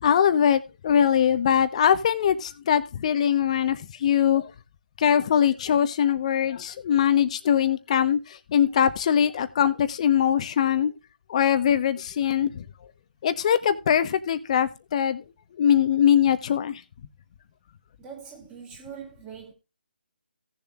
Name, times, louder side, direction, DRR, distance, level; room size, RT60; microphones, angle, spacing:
voice 1, 0.0-4.4 5.0-8.2 8.5-10.9 11.3-12.6 13.2-15.2 15.6-16.8, left 9 dB, 35° left, 1.1 m, -22 dB
voice 2, 18.0-19.5, right 7 dB, 15° right, 3.0 m, -42 dB
17.5 x 7.2 x 2.5 m
figure-of-eight pair, 155°, 6 cm